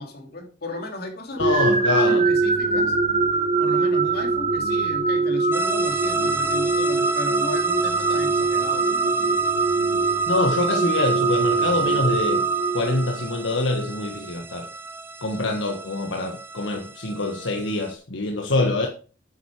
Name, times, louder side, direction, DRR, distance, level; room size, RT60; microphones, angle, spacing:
voice 1, 0.0-3.0 3.6-9.4, left 1 dB, 55° left, 2.8 m, -35 dB
voice 2, 1.4-2.3 10.3-12.5 12.7-14.7 15.2-18.9, left 2 dB, 75° left, 1.4 m, -25 dB
sound 1, 1.4-13.4, right 3 dB, 35° right, 1.3 m, -22 dB
sound 2, 5.5-17.9, right 3 dB, 10° right, 1.0 m, -33 dB
9.1 x 8.0 x 4.8 m
head